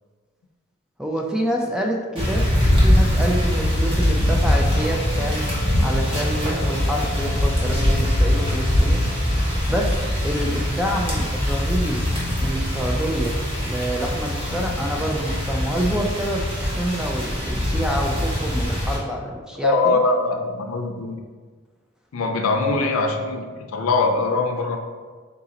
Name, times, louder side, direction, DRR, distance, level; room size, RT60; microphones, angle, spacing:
voice 1, 1.0-5.5 5.8-9.0 9.7-10.0 10.2-12.0 12.4-20.0, equal, 5° right, 0 dB, 0.4 m, -27 dB
sound 1, 2.2-19.0, equal, 25° right, 1.1 m, -22 dB
sound 2, 4.5-10.3, left 2 dB, 60° left, 0.8 m, -39 dB
voice 2, 19.6-21.2 22.1-23.5 23.7-24.8, left 3 dB, 80° left, 5 dB, 0.5 m, -22 dB
3.9 x 3.7 x 2.9 m, 1.5 s
head